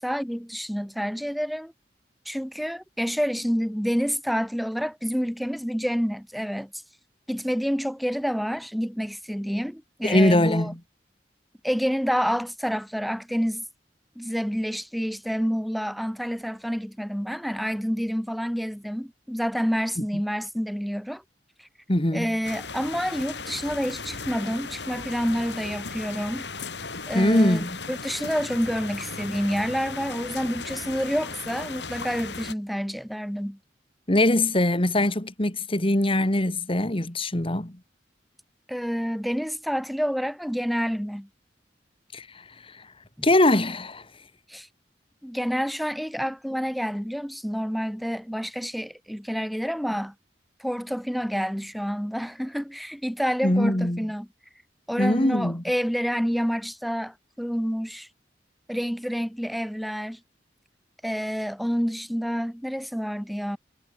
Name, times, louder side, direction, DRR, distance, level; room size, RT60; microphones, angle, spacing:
voice 1, 0.0-1.7 2.3-6.7 7.3-10.7 11.6-13.6 14.2-21.2 22.1-26.5 27.1-33.6 38.7-41.3 43.2-43.3 44.5-44.7 45.2-50.1 50.6-54.3 54.9-58.1 58.7-60.2 61.0-63.6, equal, ahead, 4.1 m, -28 dB
voice 2, 10.0-10.8 21.9-22.3 27.1-27.8 34.1-37.7 42.1-42.8 43.2-44.1 53.4-54.1 55.0-55.6, left 1 dB, 30° left, 2.2 m, -22 dB
sound 1, 22.4-32.5, left 4 dB, 70° left, 6.8 m, -36 dB
head